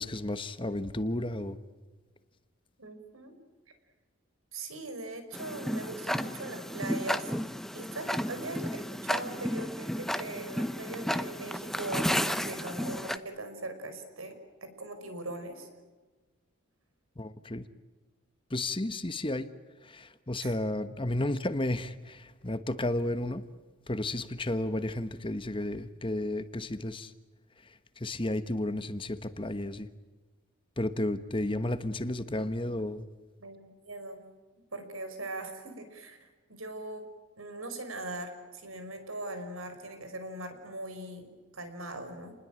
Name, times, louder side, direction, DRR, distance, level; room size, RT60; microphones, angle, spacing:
voice 1, 0.0-1.6 17.2-17.6 18.5-19.5 19.8-23.4 23.9-27.1 28.0-29.9 30.8-33.0, left 1 dB, 25° left, 11 dB, 1.1 m, -32 dB
voice 2, 2.8-3.3 4.5-7.3 7.7-14.3 14.6-15.7 20.4-20.5 33.4-34.2 34.7-37.1 37.4-42.4, right 2 dB, 90° right, 8 dB, 5.3 m, -40 dB
Tick-tock, 5.3-13.2, equal, ahead, 0.7 m, -33 dB
30.0 x 20.5 x 8.9 m, 1.3 s
head